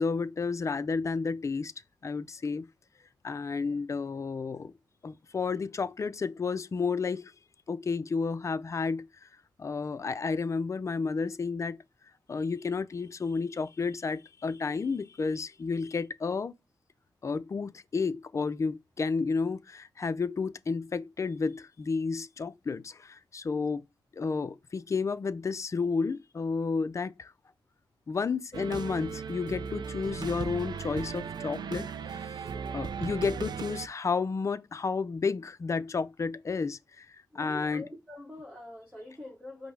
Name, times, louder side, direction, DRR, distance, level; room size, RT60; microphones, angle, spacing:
voice 1, 0.0-1.7 2.0-2.7 3.2-4.7 5.0-7.3 7.7-9.3 9.6-11.8 12.3-16.5 17.2-23.8 24.1-27.3 28.1-31.9 32.2-32.4 32.7-37.1 37.3-37.8, left 4 dB, 40° left, 0.5 m, -31 dB
sound 1, 28.5-33.9, right 6 dB, 60° right, 0.5 m, -37 dB
voice 2, 32.4-32.9 37.3-39.7, left 1 dB, 10° right, 1.1 m, -45 dB
5.2 x 2.1 x 4.6 m
cardioid pair, 75°, 8 cm